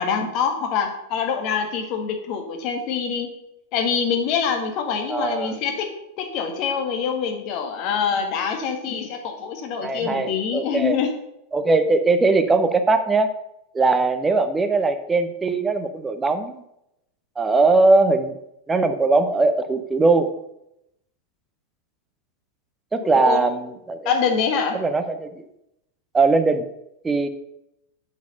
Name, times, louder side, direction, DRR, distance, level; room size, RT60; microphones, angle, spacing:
voice 1, 0.0-3.3 3.7-5.9 6.2-11.1 23.0-23.4 24.0-24.8, left 6 dB, 40° left, 4 dB, 1.5 m, -25 dB
voice 2, 5.1-5.6 9.8-11.0 11.5-13.3 13.7-16.6 17.4-18.4 18.7-20.3 22.9-24.1 24.7-25.4 26.1-26.6 27.0-27.3, right 3 dB, 15° right, 9 dB, 0.8 m, -20 dB
7.2 x 6.3 x 5.3 m, 0.82 s
figure-of-eight pair, 90°, 0 cm